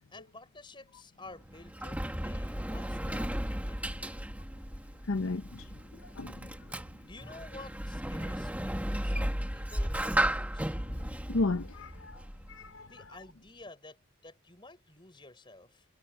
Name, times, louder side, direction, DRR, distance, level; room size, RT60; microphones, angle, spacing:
voice 1, 0.1-4.3 6.9-10.8 12.9-15.9, left 2 dB, 20° left, 4.7 m, -52 dB
Sliding door, 1.3-12.7, right 1 dB, 5° right, 2.0 m, -35 dB
voice 2, 5.1-5.6 6.2-6.8 11.3-12.2 12.5-12.9, left 3 dB, 70° left, 0.8 m, -33 dB
head